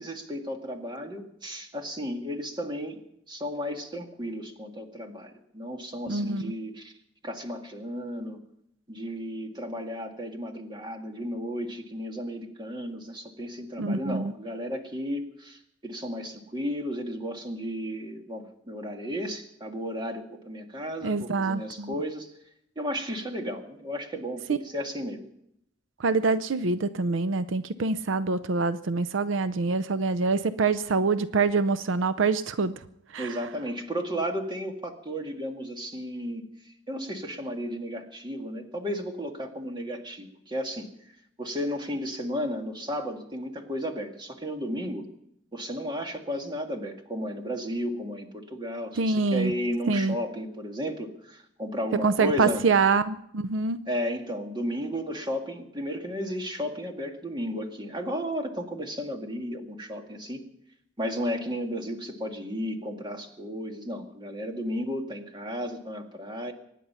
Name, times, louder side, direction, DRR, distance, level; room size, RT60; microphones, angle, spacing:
voice 1, 0.0-6.9 7.2-8.4 8.9-22.3 22.8-25.2 33.2-36.4 36.9-40.9 41.4-45.1 45.5-52.6 53.9-60.5 61.0-66.5, equal, 25° right, 3 dB, 1.9 m, -34 dB
voice 2, 6.1-6.5 13.8-14.3 21.0-21.9 24.5-24.6 26.0-32.7 33.1-33.4 49.0-49.5 49.9-50.2 52.0-53.8, right 4 dB, 85° right, 14 dB, 0.6 m, -25 dB
24.0 x 10.0 x 5.7 m, 0.77 s
head